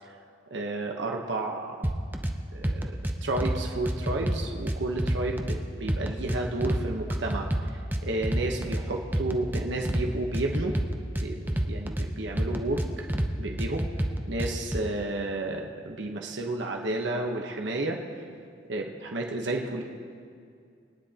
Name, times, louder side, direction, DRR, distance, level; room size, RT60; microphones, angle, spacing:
voice 1, 0.5-1.9 2.5-2.9 3.2-7.7 8.0-10.7 11.2-13.1 13.4-13.8 14.3-18.0 18.7-19.8, right 2 dB, 65° right, 1 dB, 1.0 m, -31 dB
sound 1, 1.8-2.3 2.6-3.6 3.9-5.6 5.9-6.8 7.1-8.8 9.1-10.1 10.3-12.1 12.4-13.3 13.6-14.8, right 1 dB, 10° right, 0.6 m, -28 dB
23.0 x 10.0 x 2.9 m, 2.3 s
head